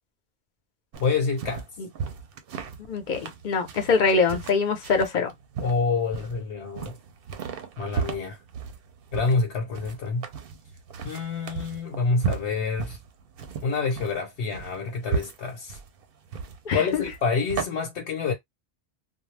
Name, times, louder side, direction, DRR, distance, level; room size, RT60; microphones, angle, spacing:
sound 1, 0.9-17.7, right 6 dB, 65° right, 0.7 m, -35 dB
voice 1, 1.0-1.6 5.6-7.0 7.8-8.4 9.1-10.3 11.0-13.0 13.6-15.8 16.7-18.3, left 4 dB, 85° left, 1.0 m, -27 dB
voice 2, 2.9-5.3 16.7-17.0, left 4 dB, 50° left, 0.7 m, -24 dB
2.3 x 2.0 x 3.1 m
omnidirectional pair, 1.1 m